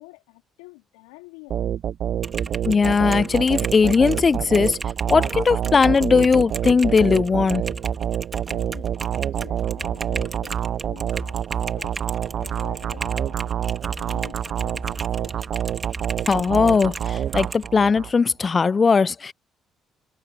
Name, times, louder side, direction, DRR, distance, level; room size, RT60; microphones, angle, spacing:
voice 1, 0.0-1.7 8.5-13.6 14.0-15.4, left 26 dB, 90° left, 3.7 m, -46 dB
sound 1, 1.5-18.1, right 10 dB, 60° right, 0.4 m, -27 dB
Typing, 2.2-17.7, right 4 dB, 30° right, 2.6 m, -35 dB
voice 2, 2.7-4.8 5.1-7.6 16.3-19.3, left 5 dB, 40° left, 0.5 m, -19 dB
hypercardioid pair, 55°, 0 cm